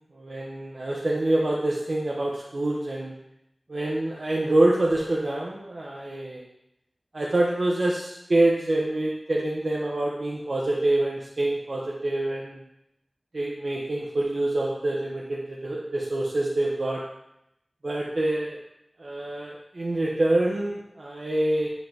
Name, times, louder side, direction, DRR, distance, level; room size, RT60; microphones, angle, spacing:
voice 1, 0.1-3.1 3.7-6.4 7.1-12.6 13.3-17.0 17.8-18.6 19.0-21.7, right 1 dB, 65° right, -4 dB, 1.1 m, -26 dB
10.5 x 5.1 x 3.0 m, 0.81 s
wide cardioid pair, 40°, 0 cm